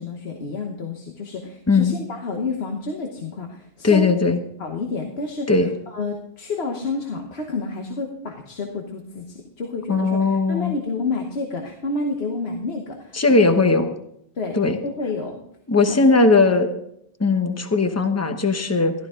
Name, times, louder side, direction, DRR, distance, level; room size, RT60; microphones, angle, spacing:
voice 1, 0.0-4.1 4.6-13.5 14.3-15.4 15.9-16.2, left 3 dB, 80° left, 3 dB, 1.4 m, -30 dB
voice 2, 3.8-4.4 5.5-5.7 9.9-10.7 13.1-13.9 14.5-14.8 15.7-16.7 17.2-18.9, left 3 dB, 15° left, 7 dB, 0.9 m, -18 dB
14.0 x 12.5 x 3.7 m, 0.73 s
omnidirectional pair, 1.0 m